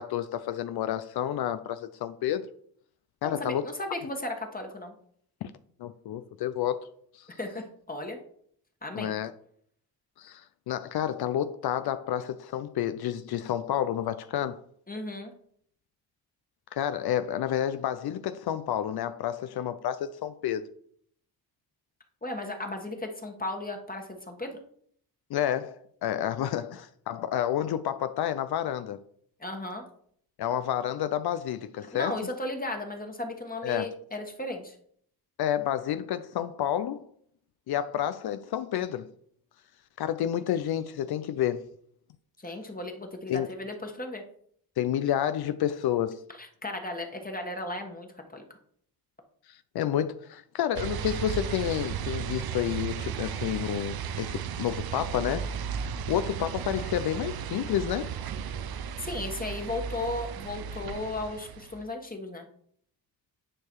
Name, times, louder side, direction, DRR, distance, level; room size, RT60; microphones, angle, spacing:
voice 1, 0.0-2.5 3.2-3.7 5.4-5.5 5.8-6.9 7.1-7.3 8.9-9.3 10.2-14.6 16.7-20.7 25.3-29.0 30.4-32.2 33.6-33.9 35.4-37.1 37.7-39.1 40.0-41.7 43.3-43.5 44.8-46.2 49.5-55.5 56.1-58.1, left 10 dB, 80° left, 0.5 m, -30 dB
voice 2, 3.2-4.9 7.4-8.2 8.8-9.1 14.9-15.3 22.2-24.6 29.4-29.9 31.9-34.7 42.4-44.2 46.4-48.4 59.0-62.4, left 2 dB, 25° left, 1.4 m, -35 dB
sound 1, 50.7-61.9, right 8 dB, 70° right, 0.7 m, -35 dB
9.9 x 4.8 x 4.6 m
cardioid pair, 90°, 38 cm